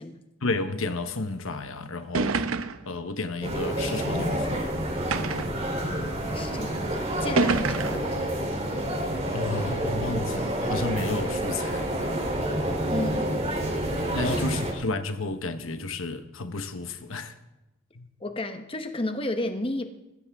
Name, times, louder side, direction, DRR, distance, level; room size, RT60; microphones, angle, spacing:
voice 1, 0.4-2.4 2.8-4.7 9.3-11.9 14.1-17.3 17.9-18.1, left 3 dB, 70° left, 1.0 m, -32 dB
sound 1, 1.5-1.6 2.2-2.9 3.8-3.9 5.1-5.6 6.5-6.6 7.4-8.1, right 4 dB, 80° right, 0.8 m, -27 dB
sound 2, 3.4-14.7, right 1 dB, 30° right, 3.3 m, -28 dB
voice 2, 5.8-8.2 12.9-13.8 14.2-14.4 18.2-19.9, left 1 dB, 25° left, 1.0 m, -33 dB
21.5 x 16.0 x 3.6 m
head